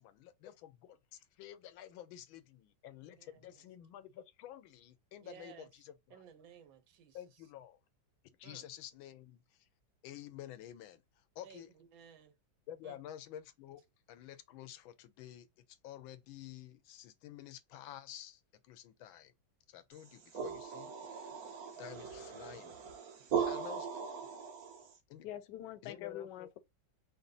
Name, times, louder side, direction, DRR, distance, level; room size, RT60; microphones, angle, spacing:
voice 1, 0.0-6.2 7.1-7.8 8.4-9.7 10.0-11.7 12.7-19.3 19.7-21.5 21.8-22.8 23.5-24.0 25.1-25.3 25.8-26.5, left 11 dB, 90° left, 1.4 m, -51 dB
voice 2, 3.0-3.5 5.2-5.7 6.1-7.2 8.4-8.6 11.4-12.3 12.8-13.0, right 8 dB, 85° right, 1.6 m, -57 dB
sound 1, 20.0-25.0, right 7 dB, 55° right, 1.2 m, -39 dB
voice 3, 25.2-26.6, left 11 dB, 70° left, 1.1 m, -45 dB
5.2 x 2.2 x 3.8 m
omnidirectional pair, 2.1 m